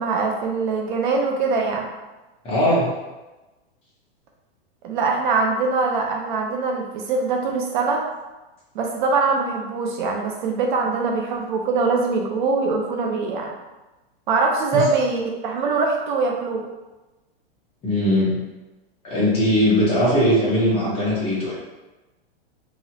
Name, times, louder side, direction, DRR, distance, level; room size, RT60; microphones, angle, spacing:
voice 1, 0.0-1.9 4.8-8.0 8.7-13.5 14.3-16.6, right 4 dB, 50° right, 1 dB, 0.5 m, -23 dB
voice 2, 2.4-2.9 14.7-14.8 17.8-18.4 19.0-21.6, equal, 20° left, -6 dB, 0.8 m, -19 dB
3.0 x 2.4 x 2.7 m, 1.1 s
supercardioid pair, 150°, 31 cm